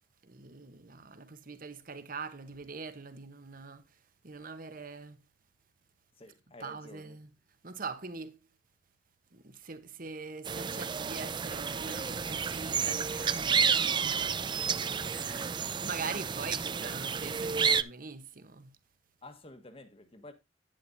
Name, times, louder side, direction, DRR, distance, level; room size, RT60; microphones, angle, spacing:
voice 1, 0.2-5.2 6.6-7.3 7.6-8.5 9.3-14.2 15.1-15.5 15.8-18.8, right 4 dB, 50° right, 1.2 m, -43 dB
voice 2, 6.2-7.2 14.7-15.9 19.2-20.3, left 1 dB, 30° left, 1.4 m, -52 dB
sound 1, 10.5-17.8, right 6 dB, 25° right, 0.4 m, -31 dB
10.0 x 9.8 x 2.8 m
head